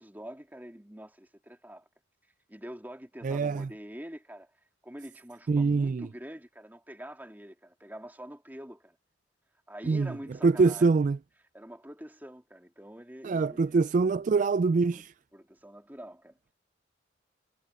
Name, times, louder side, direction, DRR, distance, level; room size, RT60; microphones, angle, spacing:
voice 1, 0.0-1.9 2.5-9.0 9.7-10.9 11.5-13.8 14.9-16.5, equal, 10° right, 2.8 m, -45 dB
voice 2, 3.2-3.7 5.5-6.1 9.9-10.1 10.4-11.2 13.2-15.1, right 4 dB, 40° right, 0.3 m, -24 dB
head